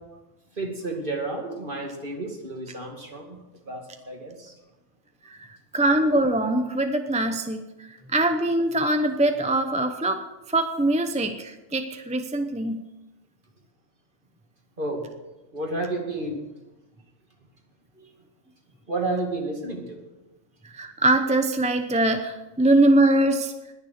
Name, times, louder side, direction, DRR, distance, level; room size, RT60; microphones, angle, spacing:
voice 1, 0.5-4.5 14.8-15.1 15.5-16.4 18.9-20.0, right 2 dB, 40° right, 1 dB, 2.5 m, -31 dB
voice 2, 5.2-10.2 10.5-12.8 20.6-23.5, right 1 dB, 5° right, 6 dB, 0.6 m, -23 dB
20.5 x 7.2 x 6.5 m, 1.0 s
omnidirectional pair, 1.4 m